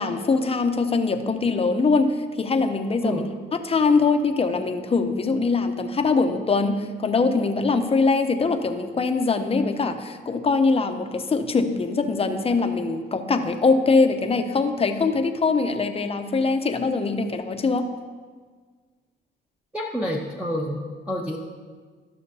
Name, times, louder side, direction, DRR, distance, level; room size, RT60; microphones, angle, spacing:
voice 1, 0.0-3.2 3.6-17.9, left 4 dB, 30° left, 7 dB, 0.7 m, -22 dB
voice 2, 19.7-21.4, equal, 5° right, -2 dB, 0.9 m, -28 dB
14.0 x 6.4 x 2.7 m, 1.5 s
cardioid pair, 90°, 20 cm